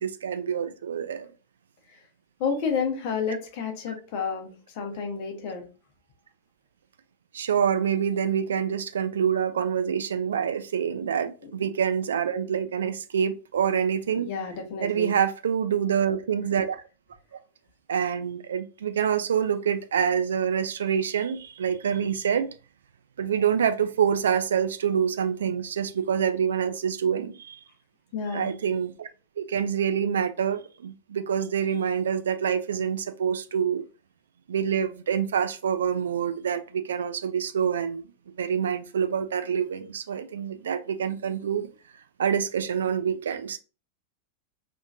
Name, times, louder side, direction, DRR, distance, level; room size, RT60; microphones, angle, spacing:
voice 1, 0.0-1.3 7.3-14.3 14.8-16.8 17.9-22.5 23.2-27.6 28.3-29.1 29.4-33.8 34.5-38.0 38.4-41.7 42.2-43.6, right 8 dB, 65° right, 0.3 m, -26 dB
voice 2, 2.4-5.7 11.4-11.5 14.2-15.1 28.1-28.6, left 5 dB, 45° left, 0.9 m, -30 dB
3.0 x 2.5 x 2.4 m
figure-of-eight pair, 90°, 0 cm